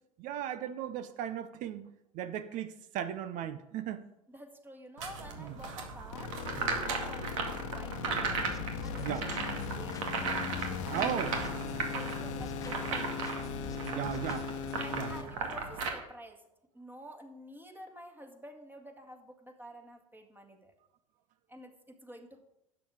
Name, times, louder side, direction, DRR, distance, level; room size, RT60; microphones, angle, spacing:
voice 1, 0.2-1.9 2.1-4.0 5.4-5.6 6.5-6.8 9.0-9.3 10.9-11.3 13.8-14.5 14.9-15.1, right 10 dB, 45° right, 0.7 m, -36 dB
voice 2, 4.3-6.4 6.8-8.4 8.8-10.2 10.9-13.5 14.8-16.4 16.7-20.7 21.5-22.4, equal, 10° right, 1.9 m, -50 dB
sound 1, 5.0-15.9, right 4 dB, 65° right, 2.1 m, -37 dB
sound 2, 6.1-15.2, left 6 dB, 65° left, 1.2 m, -39 dB
sound 3, 8.5-11.1 11.4-13.0 13.2-14.8, left 4 dB, 20° left, 1.0 m, -49 dB
12.5 x 8.9 x 4.9 m
figure-of-eight pair, 70°, 18 cm